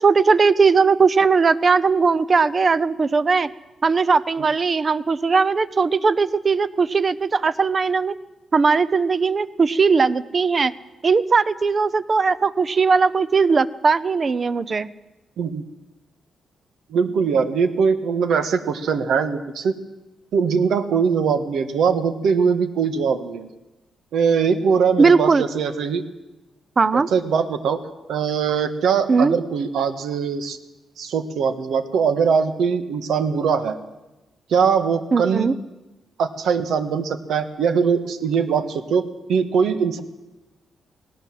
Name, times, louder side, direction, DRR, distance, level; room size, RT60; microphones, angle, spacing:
voice 1, 0.0-3.5 3.8-8.1 8.5-10.7 11.0-14.9 25.0-25.5 26.8-27.1 29.1-29.4 35.1-35.5, right 4 dB, 35° right, 16 dB, 0.7 m, -18 dB
voice 2, 16.9-19.7 20.3-23.5 24.1-26.0 27.1-27.8 28.1-30.6 31.0-33.8 34.5-35.5 36.2-40.0, right 6 dB, 80° right, 10 dB, 1.6 m, -21 dB
19.0 x 18.0 x 7.7 m, 1.0 s
cardioid pair, 140°, 0 cm